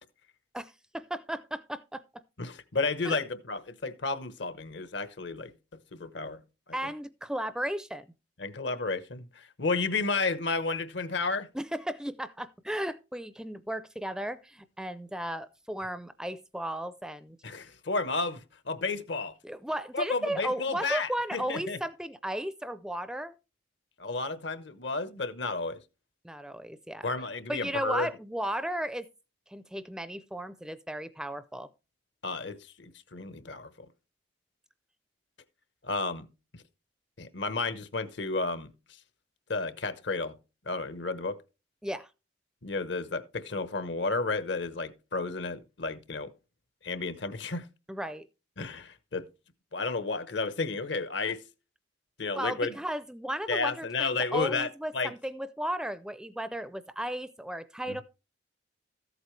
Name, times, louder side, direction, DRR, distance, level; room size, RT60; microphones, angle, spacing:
voice 1, 0.5-2.2 3.0-3.2 6.7-8.1 11.5-17.4 19.4-23.4 26.2-27.1 27.5-29.1 29.5-31.7 41.8-42.1 47.9-48.3 52.3-58.0, right 1 dB, 5° right, 0.4 m, -35 dB
voice 2, 2.4-6.4 6.7-6.9 8.4-11.5 17.4-19.3 19.9-21.8 24.0-25.8 27.0-28.1 32.2-33.9 35.8-36.6 37.2-38.7 39.5-40.4 40.7-41.4 42.6-46.3 46.8-47.7 48.6-49.3 49.7-51.4 52.2-52.7 53.5-54.7 54.9-55.1 57.9-58.0, left 3 dB, 70° left, 1.0 m, -32 dB
14.0 x 8.1 x 3.2 m
head